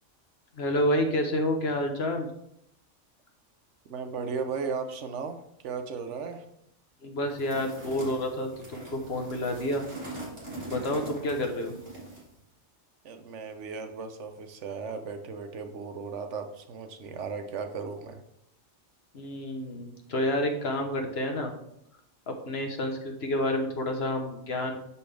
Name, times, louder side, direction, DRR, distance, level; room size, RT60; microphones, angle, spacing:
voice 1, 0.5-2.3 7.0-9.8 10.7-11.7 19.1-21.5 22.3-24.8, left 1 dB, 55° left, 4 dB, 1.2 m, -29 dB
voice 2, 3.9-6.4 13.0-18.2, right 5 dB, 75° right, 7 dB, 1.0 m, -36 dB
sound 1, 7.3-12.3, right 1 dB, 40° right, 2.5 m, -42 dB
6.3 x 5.6 x 3.3 m, 0.75 s
omnidirectional pair, 1.3 m